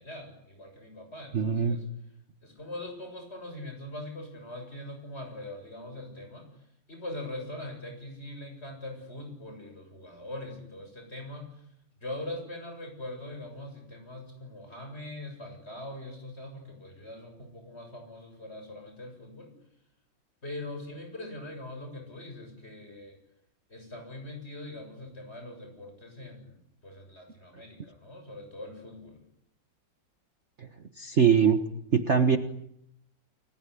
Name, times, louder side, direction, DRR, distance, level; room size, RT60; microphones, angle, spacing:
voice 1, 0.0-1.9 2.4-6.5 6.9-11.6 12.0-19.5 20.4-23.2 23.7-29.2, left 1 dB, 30° left, 4 dB, 7.7 m, -42 dB
voice 2, 1.3-1.8 30.6-30.7 31.0-31.6 31.9-32.4, right 6 dB, 40° right, 8 dB, 1.4 m, -22 dB
30.0 x 20.0 x 10.0 m, 0.77 s
omnidirectional pair, 2.1 m